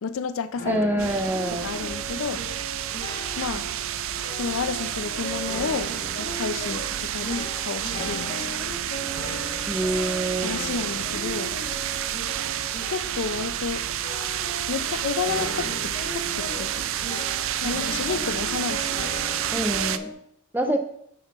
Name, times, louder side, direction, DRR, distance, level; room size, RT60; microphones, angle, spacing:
voice 1, 0.0-1.1 1.6-2.4 3.4-3.7 4.3-8.5 10.4-11.6 12.9-13.9 14.7-16.9 17.6-19.1, left 5 dB, 65° left, 0.4 m, -31 dB
sound 1, 0.6-20.1, equal, 45° left, 1.6 m, -37 dB
voice 2, 0.7-1.7 9.7-10.5 19.5-20.1 20.5-20.8, right 1 dB, 10° right, 0.6 m, -26 dB
sound 2, 1.0-20.0, right 10 dB, 60° right, 0.4 m, -30 dB
6.7 x 4.1 x 5.2 m
head